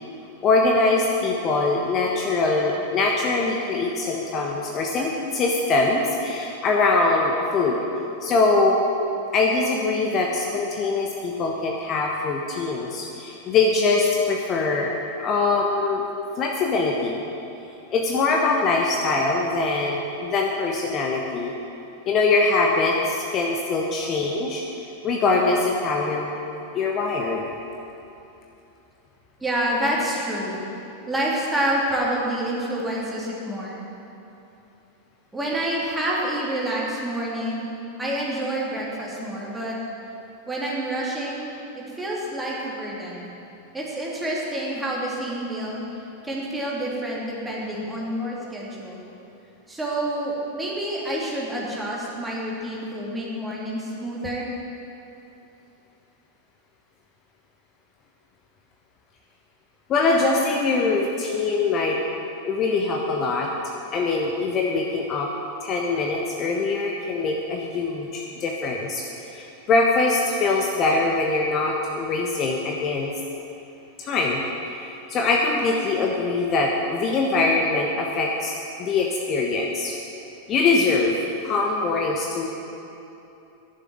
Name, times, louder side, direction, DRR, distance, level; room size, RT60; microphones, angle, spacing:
voice 1, 0.4-7.8 8.2-8.8 9.3-16.0 16.4-17.2 17.9-21.5 22.1-24.6 25.0-26.3 26.7-27.4 59.9-62.0 62.4-63.5 63.9-65.3 65.6-73.1 74.0-74.4 74.7-78.5 78.8-79.9 80.5-81.1 81.4-82.5, left 3 dB, 30° left, 0 dB, 1.2 m, -23 dB
voice 2, 29.4-30.6 31.1-33.8 35.3-37.7 38.0-39.8 40.5-43.3 43.7-45.8 46.2-49.0 49.7-54.5, right 1 dB, 10° right, -5 dB, 2.9 m, -28 dB
10.5 x 7.5 x 9.4 m, 3.0 s
figure-of-eight pair, 90°, 0 cm